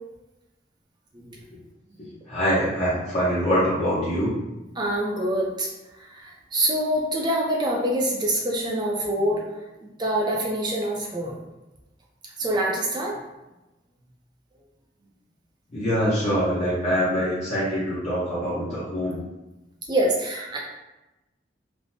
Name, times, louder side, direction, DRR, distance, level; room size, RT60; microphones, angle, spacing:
voice 1, 2.0-4.4 15.7-19.2, equal, 40° left, -11 dB, 0.9 m, -24 dB
voice 2, 4.8-5.7 5.9-11.3 12.4-13.2 19.9-20.6, right 1 dB, 25° right, -1 dB, 0.5 m, -25 dB
3.2 x 2.1 x 2.6 m, 1.0 s
head